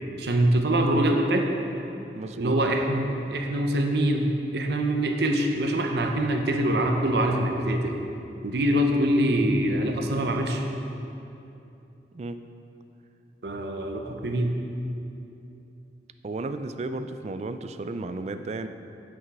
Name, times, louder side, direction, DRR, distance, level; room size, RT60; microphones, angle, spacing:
voice 1, 0.2-1.5 2.4-4.3 4.5-8.0 8.4-10.6 13.4-14.5, right 1 dB, 65° right, 3 dB, 0.7 m, -24 dB
voice 2, 2.1-2.6 12.1-12.4 16.2-18.7, right 2 dB, 40° right, 9 dB, 0.3 m, -33 dB
8.1 x 6.2 x 4.7 m, 2.8 s
head